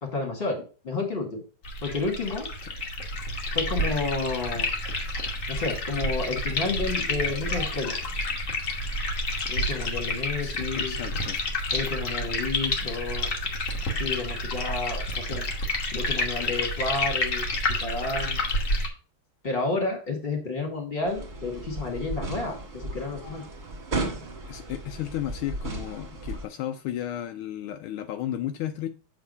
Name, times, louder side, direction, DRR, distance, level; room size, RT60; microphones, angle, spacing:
voice 1, 0.0-1.4 1.8-2.5 3.5-4.7 5.5-8.0 9.5-11.0 11.7-13.3 13.9-15.5 15.9-17.4 17.8-18.5 19.4-23.4, left 3 dB, 25° left, 2 dB, 2.1 m, -31 dB
sound 1, 1.6-18.9, left 2 dB, 45° left, 1.3 m, -29 dB
voice 2, 10.4-11.4 24.4-28.9, left 12 dB, 80° left, 8 dB, 1.4 m, -34 dB
sound 2, 21.1-26.4, right 2 dB, 25° right, 1.3 m, -35 dB
7.5 x 3.6 x 5.3 m, 0.36 s
omnidirectional pair, 2.3 m